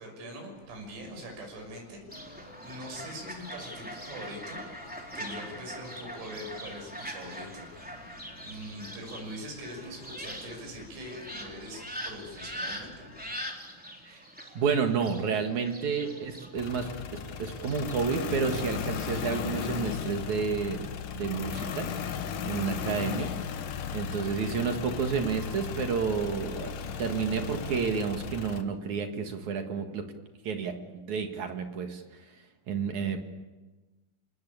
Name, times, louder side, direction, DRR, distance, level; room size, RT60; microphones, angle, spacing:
voice 1, 0.0-2.4 2.6-4.6 5.1-8.1 8.4-13.1, equal, 80° right, 3 dB, 8.7 m, -43 dB
sound 1, 0.5-13.3, left 3 dB, 35° left, 6.0 m, -55 dB
Fowl, 2.1-19.7, equal, ahead, 2.6 m, -43 dB
voice 2, 14.5-21.9 22.4-23.3 23.9-26.7 27.0-30.1 30.4-32.0 32.7-33.2, right 6 dB, 55° right, 5 dB, 2.3 m, -30 dB
sound 2, 16.6-28.6, left 7 dB, 65° left, 2.2 m, -36 dB
28.5 x 19.0 x 8.7 m, 1.2 s
omnidirectional pair, 5.4 m